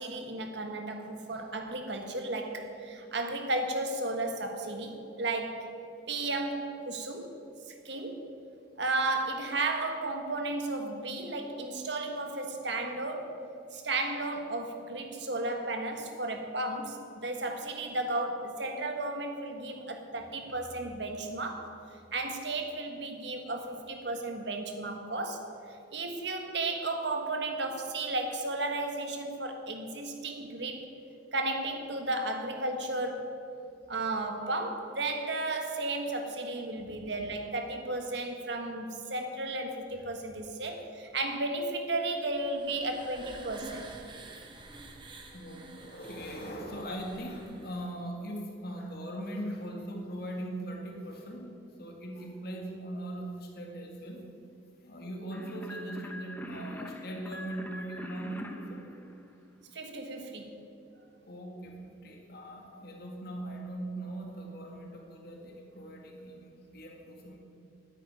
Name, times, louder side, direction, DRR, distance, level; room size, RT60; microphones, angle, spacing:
voice 1, 0.0-5.7 6.1-7.3 7.7-8.2 8.8-13.3 13.7-21.8 22.1-30.9 31.3-33.4 33.9-43.9 59.7-60.4, right 2 dB, 60° right, 4 dB, 1.6 m, -34 dB
sound 1, 42.0-47.9, right 2 dB, 25° right, 1.2 m, -49 dB
voice 2, 45.3-51.5 51.8-54.2 54.8-58.9 61.2-67.4, right 1 dB, 55° left, 1 dB, 1.9 m, -40 dB
sound 2, 55.3-59.8, equal, 10° left, 0.8 m, -44 dB
9.9 x 9.1 x 9.1 m, 2.6 s
head